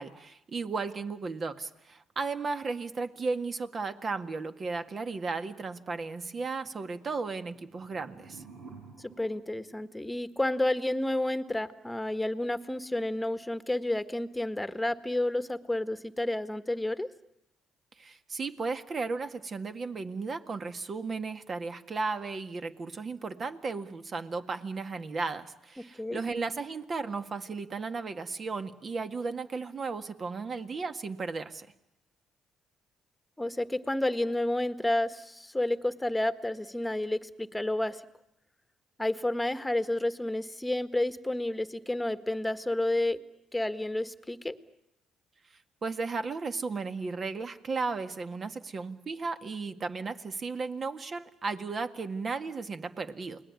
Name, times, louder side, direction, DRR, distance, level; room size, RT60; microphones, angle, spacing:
voice 1, 0.0-8.4 18.0-31.7 45.8-53.4, right 4 dB, 45° right, 9 dB, 1.9 m, -35 dB
sound 1, 7.5-10.5, right 4 dB, 70° right, 6.4 m, -52 dB
voice 2, 9.0-17.1 26.0-26.2 33.4-38.0 39.0-43.2 43.5-44.5, left 1 dB, 10° left, 11 dB, 1.6 m, -30 dB
29.0 x 20.0 x 9.7 m, 0.82 s
cardioid pair, 80°, 0 cm